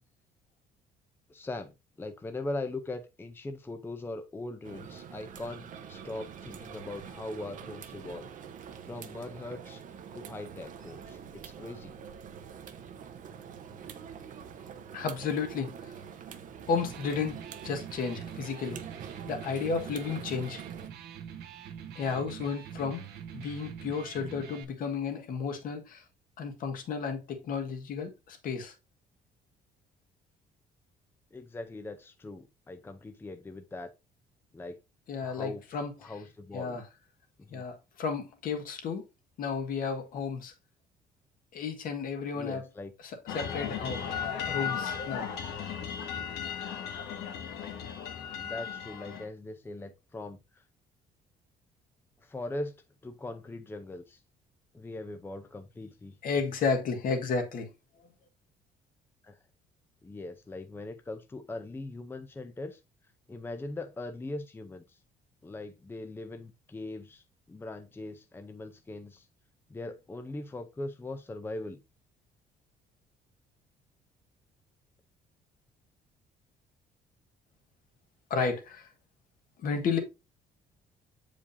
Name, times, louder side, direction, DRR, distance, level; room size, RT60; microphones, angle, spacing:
voice 1, 1.3-8.3 8.8-9.8 10.1-11.2 11.5-12.0 31.3-33.9 34.5-34.8 35.2-35.6 36.0-36.8 37.4-37.7 42.3-42.9 44.5-44.8 48.4-50.6 52.2-52.8 53.0-54.2 54.7-56.2 59.2-59.4 60.0-62.8 63.3-65.0 65.4-69.3 69.7-71.8, left 2 dB, 15° left, 0.6 m, -40 dB
sound 1, 4.6-20.9, right 7 dB, 55° right, 0.9 m, -45 dB
voice 2, 14.9-15.7 16.7-18.8 19.3-20.6 21.9-23.0 23.3-26.0 26.4-28.7 35.1-36.1 36.5-36.8 37.5-39.0 39.4-40.5 41.5-42.6 43.0-45.3 56.2-57.7 78.3-78.9 79.6-80.0, left 5 dB, 60° left, 1.6 m, -33 dB
Electric guitar, 16.6-24.6, right 8 dB, 80° right, 1.2 m, -44 dB
sound 2, 43.3-49.2, left 7 dB, 85° left, 1.6 m, -36 dB
7.0 x 5.0 x 2.7 m
cardioid pair, 115°, 16 cm